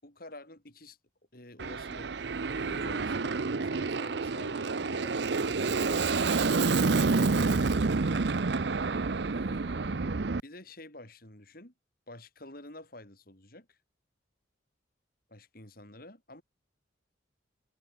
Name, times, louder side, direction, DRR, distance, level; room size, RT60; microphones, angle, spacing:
voice 1, 0.0-1.0 1.3-2.3 2.6-7.5 9.3-11.7 12.1-13.8 15.3-16.4, left 1 dB, 50° left, 5.3 m, -50 dB
Aircraft, 1.6-10.4, right 4 dB, 60° right, 0.7 m, -28 dB
head